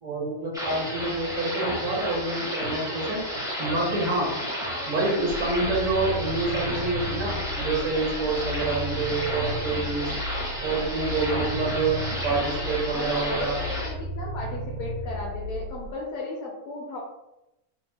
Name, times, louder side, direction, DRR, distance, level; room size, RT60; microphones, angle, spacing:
voice 1, 0.0-3.2 3.6-4.3 4.8-10.1 10.6-13.6, right 2 dB, 60° right, -2 dB, 1.5 m, -27 dB
sound 1, 0.5-13.9, equal, 5° right, 0.6 m, -32 dB
sound 2, 5.3-15.9, equal, 85° right, 1.7 m, -35 dB
voice 2, 12.9-17.0, left 2 dB, 70° left, -3 dB, 1.1 m, -35 dB
5.4 x 2.8 x 2.2 m, 0.92 s
omnidirectional pair, 1.5 m